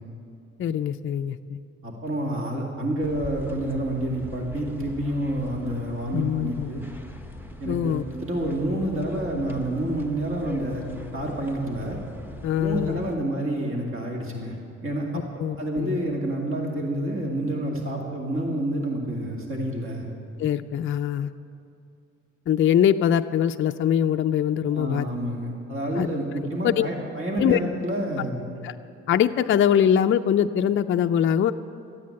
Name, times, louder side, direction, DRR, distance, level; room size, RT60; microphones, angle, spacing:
voice 1, 0.6-1.6 6.1-6.7 7.7-8.0 12.4-13.0 15.4-16.0 20.4-21.3 22.5-25.1 26.0-26.1 26.6-26.9 27.4-27.6 28.6-28.7 29.1-31.5, left 9 dB, 45° left, 7 dB, 0.4 m, -22 dB
voice 2, 1.8-6.8 7.6-10.9 11.1-12.0 12.6-14.6 14.8-20.1 24.7-28.4, right 1 dB, 45° right, 0 dB, 2.4 m, -28 dB
sound 1, 3.0-13.2, left 1 dB, 5° right, 1.0 m, -42 dB
13.5 x 9.3 x 8.6 m, 2.6 s
cardioid pair, 90°, 30 cm